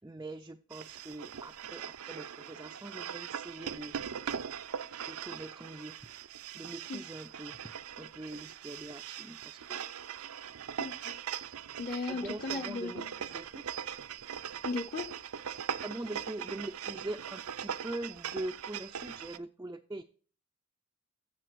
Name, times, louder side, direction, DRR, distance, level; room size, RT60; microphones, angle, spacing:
voice 1, 0.0-4.2 5.1-6.0 6.5-9.8 10.4-10.6 12.1-13.6 15.8-20.0, right 1 dB, 15° right, 4 dB, 0.4 m, -43 dB
sound 1, 0.7-19.4, right 8 dB, 75° right, 0.5 m, -41 dB
voice 2, 10.8-11.2 11.8-13.1 14.6-15.1, left 3 dB, 40° left, 4 dB, 0.8 m, -36 dB
13.5 x 7.4 x 4.6 m, 0.42 s
head